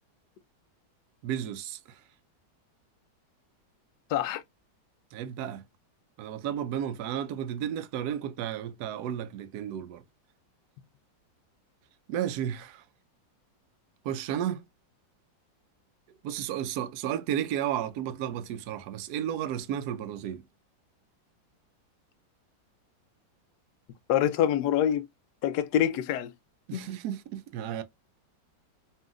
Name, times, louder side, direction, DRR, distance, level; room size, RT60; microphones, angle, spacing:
voice 1, 1.2-2.0 5.1-5.6 6.2-10.0 12.1-12.8 14.0-14.7 16.2-20.4 26.7-27.8, right 10 dB, 75° right, 0.9 m, -33 dB
voice 2, 4.1-4.4 24.1-25.1 25.4-26.3 26.7-26.9, left 10 dB, 75° left, 1.0 m, -25 dB
5.5 x 2.7 x 2.4 m
omnidirectional pair, 2.1 m